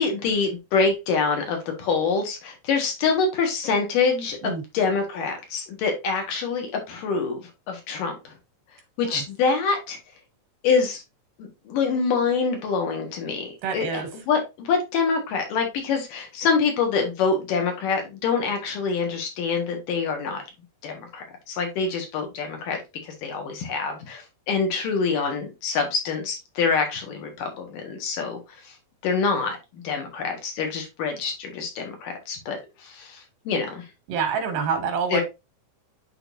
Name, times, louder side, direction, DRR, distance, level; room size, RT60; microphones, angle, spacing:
voice 1, 0.0-7.4 7.7-8.3 9.0-10.0 10.6-11.0 11.4-20.4 20.8-28.4 29.0-32.6 32.8-33.2 33.5-33.8 35.1-35.2, left 5 dB, 80° left, 3 dB, 3.2 m, -25 dB
voice 2, 13.6-14.1 34.1-35.2, right 6 dB, 85° right, 6 dB, 3.3 m, -27 dB
11.0 x 3.8 x 2.6 m, 0.24 s
omnidirectional pair, 3.8 m